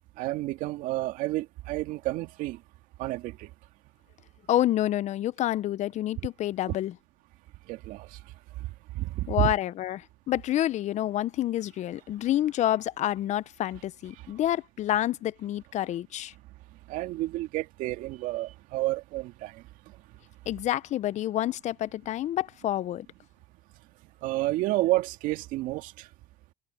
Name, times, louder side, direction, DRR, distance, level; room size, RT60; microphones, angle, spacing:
voice 1, 0.2-2.6 3.0-3.5 7.7-8.1 8.9-9.5 16.9-19.5 24.2-25.9, right 18 dB, 65° right, 2.1 m, -30 dB
voice 2, 4.5-6.9 9.3-16.3 20.5-23.1, left 13 dB, 55° left, 0.9 m, -28 dB
hypercardioid pair, 75°, 15 cm